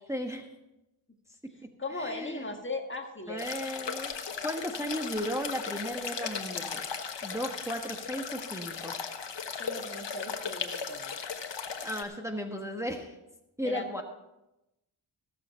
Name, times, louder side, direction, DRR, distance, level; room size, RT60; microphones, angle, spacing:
voice 1, 0.1-0.5 2.0-2.4 3.3-4.1 4.4-6.8 7.2-9.0 11.8-13.2 13.6-14.0, equal, 5° right, 2 dB, 1.4 m, -35 dB
voice 2, 1.8-3.4 9.6-11.1 13.6-14.0, left 2 dB, 25° left, 4 dB, 1.7 m, -38 dB
sound 1, 3.4-12.0, left 6 dB, 60° left, 1.3 m, -37 dB
16.5 x 7.0 x 5.7 m, 0.95 s
cardioid pair, 55°, 49 cm